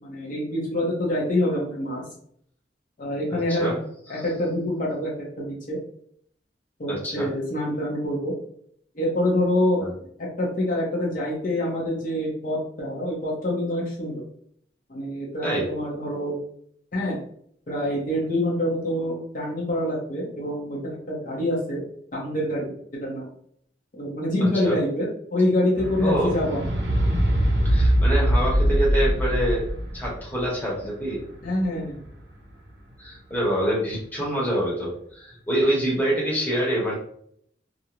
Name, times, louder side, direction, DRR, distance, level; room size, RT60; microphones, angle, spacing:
voice 1, 0.0-2.0 3.0-3.7 4.1-5.8 6.8-8.3 8.9-9.8 10.4-14.2 14.9-16.4 16.9-17.2 17.7-21.8 22.1-22.7 23.0-23.3 23.9-26.7 31.4-32.0, left 1 dB, 50° left, -4 dB, 0.7 m, -26 dB
voice 2, 3.3-3.8 4.1-4.2 6.9-7.3 9.8-9.9 15.4-15.7 24.4-24.8 26.0-26.3 27.6-29.7 29.9-31.2 33.0-36.9, right 1 dB, 10° left, -5 dB, 0.9 m, -26 dB
sound 1, 25.8-32.2 33.0-33.1, equal, 65° right, 0.6 m, -23 dB
2.4 x 2.0 x 2.9 m, 0.66 s
head